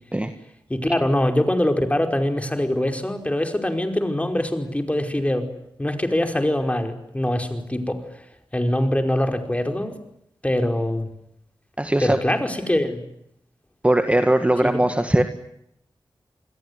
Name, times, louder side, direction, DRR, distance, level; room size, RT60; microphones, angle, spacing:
voice 1, 0.7-5.5 5.8-8.0 8.5-10.0 10.4-11.1 12.0-13.0 14.6-14.8, left 1 dB, 15° left, 6 dB, 5.1 m, -23 dB
voice 2, 11.8-12.2 13.8-15.2, right 1 dB, 15° right, 7 dB, 1.9 m, -19 dB
28.5 x 21.5 x 9.8 m, 0.76 s
cardioid pair, 55°, 9 cm